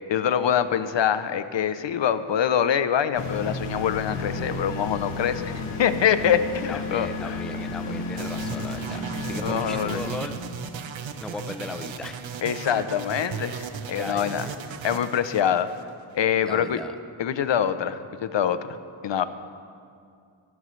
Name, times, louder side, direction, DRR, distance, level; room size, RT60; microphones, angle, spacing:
voice 1, 0.1-7.3 9.4-10.0 12.4-14.5 14.8-15.7 16.1-16.8 17.2-18.8 19.0-19.2, left 8 dB, 65° left, 12 dB, 0.7 m, -24 dB
sound 1, 3.1-10.1, left 3 dB, 85° left, 1.8 m, -32 dB
voice 2, 6.2-10.3 11.2-12.2 13.9-14.8 16.4-17.0, left 2 dB, ahead, 7 dB, 0.4 m, -37 dB
sound 2, 8.2-16.2, right 6 dB, 70° right, 0.8 m, -36 dB
24.5 x 11.0 x 3.2 m, 2.3 s
wide cardioid pair, 175°, 48 cm